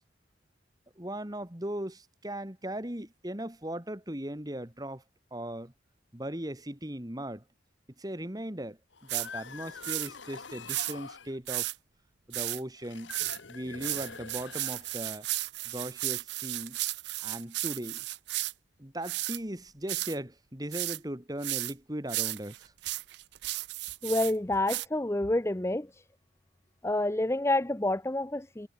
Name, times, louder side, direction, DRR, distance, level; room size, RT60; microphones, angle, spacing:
voice 1, 1.0-5.0 5.3-5.7 6.1-7.4 8.0-11.7 12.3-13.1 13.5-15.3 15.6-16.8 17.2-18.0 18.8-22.7, right 1 dB, 20° right, 2.0 m, -38 dB
sound 1, 8.9-11.4 12.8-15.2, left 5 dB, 70° left, 1.5 m, -45 dB
sound 2, 9.1-9.3 9.8-10.1 10.7-10.9 11.5-11.7 12.3-12.6 13.1-13.4 13.8-18.5 19.0-19.4 19.9-20.2 20.7-21.0 21.4-21.7 22.1-24.3 24.7-24.9, right 18 dB, 60° right, 0.5 m, -34 dB
voice 2, 24.0-25.9 26.8-28.7, left 1 dB, 15° left, 0.6 m, -28 dB
head